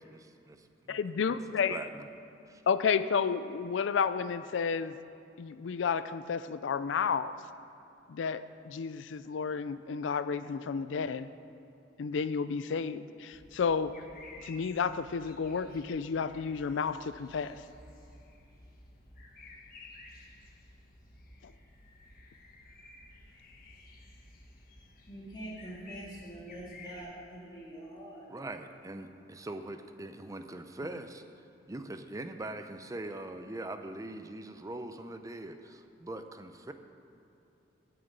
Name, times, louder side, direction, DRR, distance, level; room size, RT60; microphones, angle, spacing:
voice 1, 0.0-1.0 1.3-1.4 1.7-2.1 2.5-2.6 28.3-36.7, right 2 dB, 20° right, 8 dB, 0.5 m, -42 dB
voice 2, 0.9-1.8 2.7-5.0 5.4-7.4 8.1-11.3 12.0-13.9 14.4-17.6 21.4-21.5, left 6 dB, 75° left, 14 dB, 0.4 m, -31 dB
sound 1, 13.3-27.0, left 2 dB, 50° left, 1.3 m, -54 dB
voice 3, 25.1-28.3, right 1 dB, 25° left, -6 dB, 2.1 m, -44 dB
9.1 x 6.8 x 8.8 m, 2.8 s
head